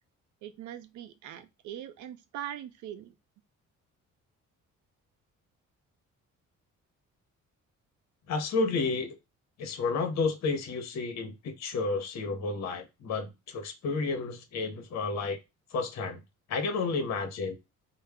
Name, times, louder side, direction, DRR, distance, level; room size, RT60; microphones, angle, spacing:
voice 1, 0.4-3.1, right 11 dB, 75° right, 0.5 m, -41 dB
voice 2, 8.3-9.2 9.6-15.4 15.7-16.2 16.5-17.6, left 4 dB, 60° left, 0.8 m, -31 dB
2.1 x 2.0 x 3.4 m
cardioid pair, 90°, 30 cm